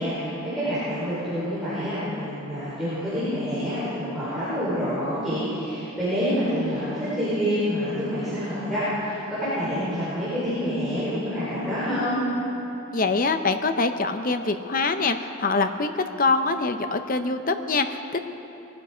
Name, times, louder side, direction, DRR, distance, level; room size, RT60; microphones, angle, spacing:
voice 1, 0.0-12.2, equal, ahead, -14 dB, 4.5 m, -27 dB
voice 2, 12.9-18.2, left 3 dB, 40° left, 8 dB, 0.7 m, -24 dB
20.5 x 12.0 x 5.0 m, 2.9 s
head